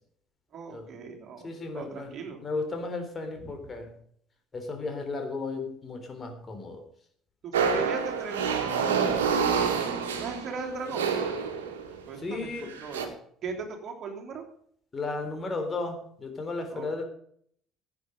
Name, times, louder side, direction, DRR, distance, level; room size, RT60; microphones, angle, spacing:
voice 1, 0.5-2.4 3.4-3.5 7.4-9.5 10.1-11.1 12.1-13.1 13.4-14.4 16.7-16.9, right 5 dB, 45° right, 2 dB, 3.2 m, -38 dB
voice 2, 1.4-2.1 2.4-3.9 4.5-6.8 7.8-7.9 12.2-12.7 14.9-17.0, left 3 dB, 30° left, 5 dB, 3.6 m, -34 dB
sound 1, 7.5-12.0 12.7-13.1, right 6 dB, 70° right, 2.0 m, -28 dB
17.5 x 8.7 x 5.3 m, 0.64 s
figure-of-eight pair, 55°, 0 cm